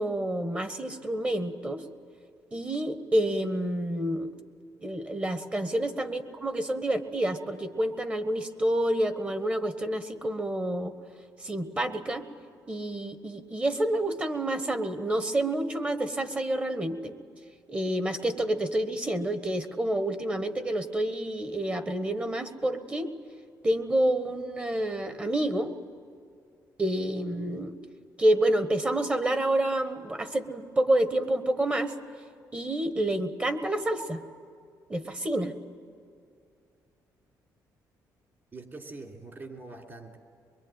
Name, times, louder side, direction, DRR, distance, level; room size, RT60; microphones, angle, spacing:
voice 1, 0.0-1.9 2.5-4.3 4.8-10.9 11.4-12.3 12.7-17.2 17.7-23.1 23.6-25.7 26.8-27.7 28.2-31.9 32.5-34.2 34.9-35.5, right 1 dB, 15° right, 9 dB, 1.5 m, -28 dB
voice 2, 38.5-40.2, right 3 dB, 35° right, 2 dB, 3.4 m, -44 dB
23.5 x 22.5 x 9.1 m, 2.3 s
cardioid pair, 130°, 7 cm